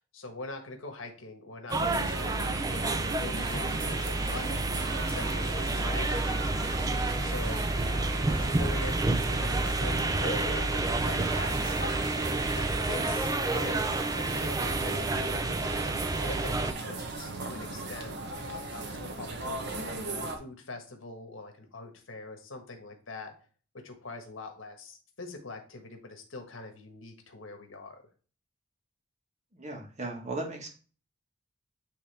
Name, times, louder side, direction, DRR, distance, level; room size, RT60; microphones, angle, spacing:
voice 1, 0.1-4.6 5.1-7.6 8.2-11.8 12.5-15.9 16.2-18.1 18.7-23.3 23.7-28.0, left 3 dB, 85° left, 5 dB, 1.4 m, -43 dB
sound 1, 1.7-16.7, right 2 dB, 20° right, 0.5 m, -29 dB
sound 2, 1.7-20.4, right 2 dB, 55° right, 1.1 m, -38 dB
voice 2, 29.5-30.7, right 2 dB, 35° right, 0 dB, 1.7 m, -36 dB
8.7 x 3.4 x 3.4 m, 0.38 s
head